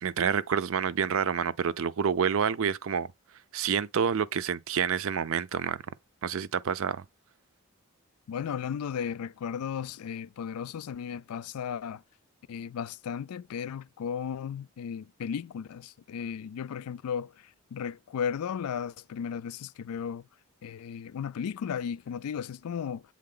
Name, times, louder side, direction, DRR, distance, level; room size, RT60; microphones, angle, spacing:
voice 1, 0.0-3.1 3.5-5.8 6.2-7.0, right 7 dB, 65° right, 0.5 m, -28 dB
voice 2, 8.3-12.0 12.5-17.3 17.7-20.2 20.6-23.0, left 7 dB, 90° left, 0.4 m, -35 dB
7.6 x 3.6 x 3.8 m
head